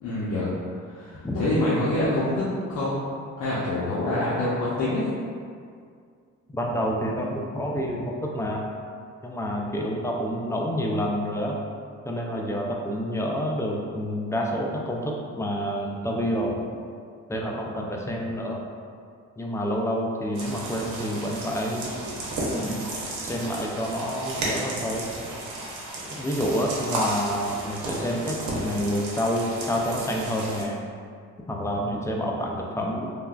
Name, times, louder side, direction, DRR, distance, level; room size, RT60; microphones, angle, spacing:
voice 1, 0.0-0.5 0.9-2.4 2.7-3.0 3.4-5.0, left 1 dB, 80° left, -9 dB, 0.7 m, -26 dB
voice 2, 6.5-8.7 9.2-11.6 12.0-16.6 17.3-18.6 19.4-21.9 22.5-22.8 23.2-25.1 26.1-30.8 31.5-33.1, equal, 10° left, -1 dB, 0.3 m, -28 dB
sound 1, 20.3-30.6, right 1 dB, 70° right, 0.8 m, -33 dB
3.2 x 2.3 x 2.3 m, 2.2 s
cardioid pair, 90°, 30 cm